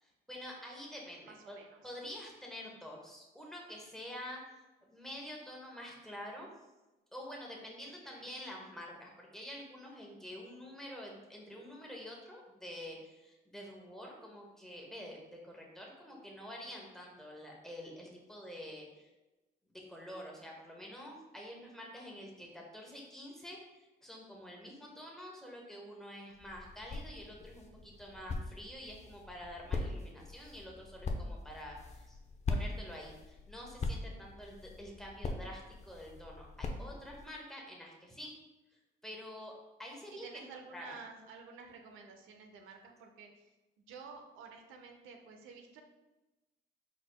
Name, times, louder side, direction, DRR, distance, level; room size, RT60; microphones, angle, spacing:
voice 1, 0.3-1.6 1.8-4.4 4.9-6.5 7.1-19.1 19.7-32.2 32.5-38.3 39.0-39.5 39.8-40.3 40.7-41.0, equal, ahead, -2 dB, 1.1 m, -47 dB
voice 2, 1.2-1.9 8.0-8.3 40.2-43.4 43.9-45.8, right 5 dB, 85° right, 3 dB, 0.6 m, -52 dB
sound 1, 26.3-37.3, left 3 dB, 35° left, 0.5 m, -41 dB
4.8 x 4.1 x 2.3 m, 1.1 s
cardioid pair, 90°, 20 cm